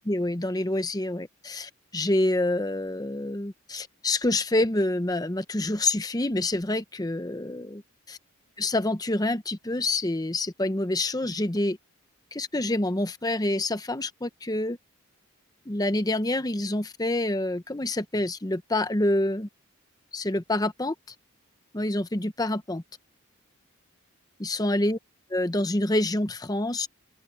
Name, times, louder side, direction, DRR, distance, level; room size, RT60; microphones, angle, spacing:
voice 1, 0.0-7.8 8.1-8.2 8.6-11.8 12.3-14.8 15.7-19.5 20.1-20.9 21.7-22.8 24.4-25.0 25.3-26.9, left 1 dB, 20° left, 0.8 m, -27 dB
open air
head